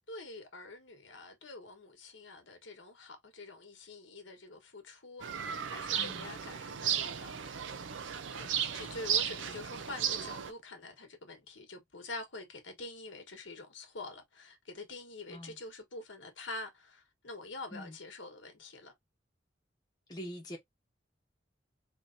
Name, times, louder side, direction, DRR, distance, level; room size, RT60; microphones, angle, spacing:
voice 1, 0.1-7.4 8.3-18.9, left 2 dB, 90° left, 1.3 m, -46 dB
sound 1, 5.2-10.5, right 8 dB, 85° right, 0.6 m, -35 dB
voice 2, 6.0-6.3 15.3-15.6 17.7-18.0 20.1-20.6, equal, 20° left, 1.1 m, -44 dB
4.0 x 3.1 x 2.6 m
head